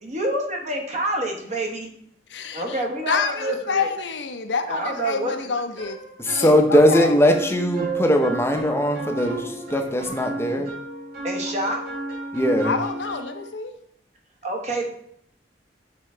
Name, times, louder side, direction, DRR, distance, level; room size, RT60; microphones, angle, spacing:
voice 1, 0.0-1.9 2.5-3.9 4.7-5.3 11.2-11.8 14.4-14.9, right 1 dB, 40° right, 2 dB, 1.2 m, -27 dB
voice 2, 2.3-2.8 3.1-6.0 6.3-7.2 12.6-13.7, left 5 dB, 80° left, 7 dB, 0.6 m, -27 dB
sound 1, 5.8-13.5, right 2 dB, 55° right, 2.6 m, -32 dB
voice 3, 6.2-10.7 12.3-12.8, equal, 15° left, 4 dB, 0.6 m, -20 dB
6.7 x 3.7 x 4.3 m, 0.67 s
head